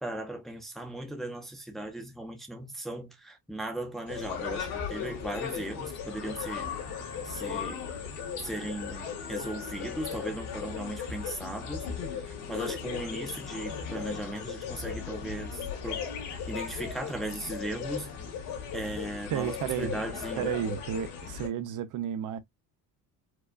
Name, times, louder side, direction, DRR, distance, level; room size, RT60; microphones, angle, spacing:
voice 1, 0.0-6.7 7.2-7.8 8.4-11.8 12.2-16.0 16.5-18.1 18.7-20.5, right 1 dB, ahead, 0.6 m, -37 dB
sound 1, 4.1-21.5, left 7 dB, 85° left, 1.8 m, -37 dB
voice 2, 19.3-19.9 20.4-22.4, right 10 dB, 55° right, 0.6 m, -32 dB
4.7 x 2.3 x 2.3 m
cardioid pair, 155°, 38 cm